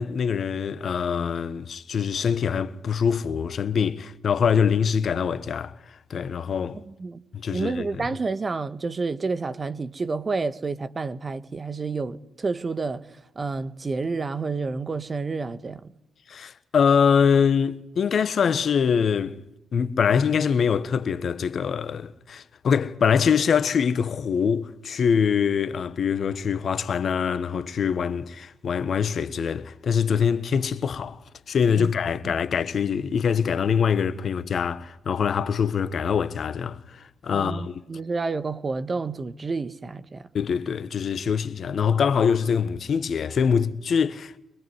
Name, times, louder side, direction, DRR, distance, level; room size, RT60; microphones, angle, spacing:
voice 1, 0.0-5.7 6.1-6.8 7.3-8.1 16.3-19.4 19.7-31.2 31.5-37.8 40.3-44.4, left 7 dB, 55° left, 1.3 m, -24 dB
voice 2, 7.5-13.0 13.3-15.9 31.8-31.9 32.2-32.3 37.3-40.3, right 4 dB, 40° right, 1.5 m, -29 dB
25.0 x 20.0 x 9.6 m
hypercardioid pair, 50°, 0 cm